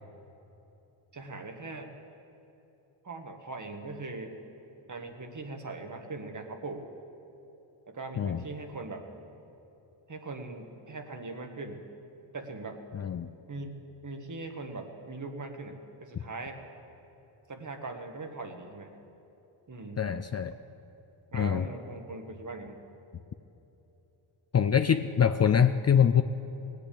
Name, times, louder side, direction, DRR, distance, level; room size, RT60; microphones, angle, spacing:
voice 1, 1.1-1.9 3.0-4.3 4.9-6.9 7.8-9.1 10.1-11.9 12.3-12.8 13.5-16.6 17.5-18.9 19.7-20.1 21.3-22.8, right 3 dB, 40° right, 5 dB, 1.7 m, -40 dB
voice 2, 12.9-13.3 20.0-20.6 21.3-21.7 24.5-26.2, left 8 dB, 35° left, 10 dB, 0.5 m, -24 dB
18.0 x 8.4 x 8.6 m, 3.0 s
cardioid pair, 75°, 48 cm